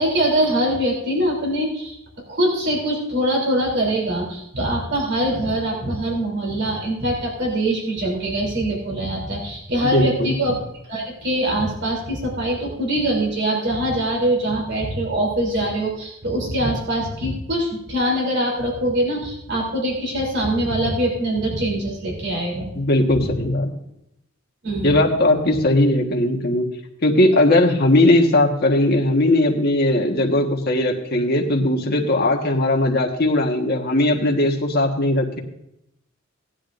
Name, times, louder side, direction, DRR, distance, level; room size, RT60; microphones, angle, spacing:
voice 1, 0.0-2.0 2.3-10.6 10.9-22.7 23.1-23.3 24.6-25.0, right 1 dB, 55° right, -1 dB, 3.4 m, -23 dB
voice 2, 9.9-10.3 22.7-23.7 24.8-26.7 27.0-35.4, left 1 dB, 50° left, 1 dB, 1.5 m, -18 dB
17.5 x 10.5 x 2.6 m, 0.82 s
head